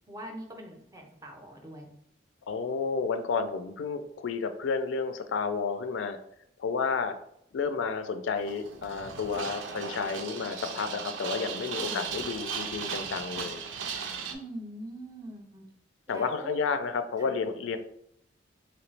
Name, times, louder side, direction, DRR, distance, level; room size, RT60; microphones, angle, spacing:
voice 1, 0.1-1.9 11.9-12.1 14.3-15.7 16.1-16.6 17.2-17.3, right 1 dB, 15° right, 2 dB, 0.5 m, -42 dB
voice 2, 2.5-6.2 6.6-7.1 7.5-13.6 16.1-17.8, left 5 dB, 80° left, 9 dB, 0.4 m, -31 dB
sound 1, 8.4-14.3, right 6 dB, 80° right, 0.4 m, -37 dB
3.0 x 2.9 x 3.2 m, 0.73 s
head